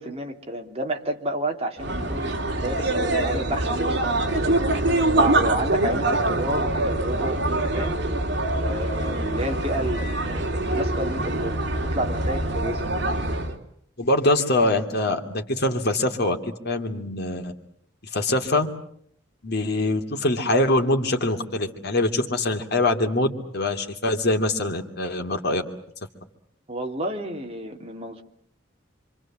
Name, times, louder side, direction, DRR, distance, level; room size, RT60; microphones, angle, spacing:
voice 1, 0.0-4.6 5.1-8.0 8.5-13.0 26.7-28.2, right 1 dB, 35° right, 2 dB, 2.9 m, -30 dB
sound 1, 1.8-13.6, right 2 dB, 65° right, 3.3 m, -24 dB
voice 2, 14.0-17.5 18.1-18.7 19.4-25.6, left 2 dB, 60° left, 4 dB, 2.8 m, -23 dB
26.5 x 26.5 x 7.5 m, 0.67 s
head